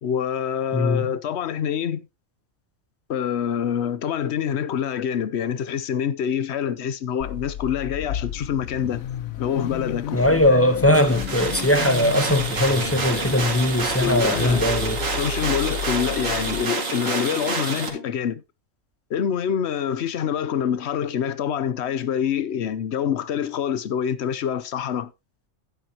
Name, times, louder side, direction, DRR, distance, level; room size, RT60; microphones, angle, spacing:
voice 1, 0.0-2.1 3.1-9.0 9.4-10.2 10.5-10.6 14.0-14.6 15.1-18.4 19.1-25.1, left 8 dB, 55° left, 1.0 m, -26 dB
voice 2, 0.7-1.0 10.1-15.0, left 1 dB, 15° left, 0.6 m, -20 dB
Car / Idling / Accelerating revving vroom, 7.2-16.6, left 10 dB, 80° left, 1.1 m, -32 dB
sound 1, 10.9-17.9, right 4 dB, 65° right, 2.3 m, -28 dB
sound 2, 12.7-18.1, right 2 dB, 45° right, 1.7 m, -36 dB
11.5 x 9.4 x 2.9 m
omnidirectional pair, 1.5 m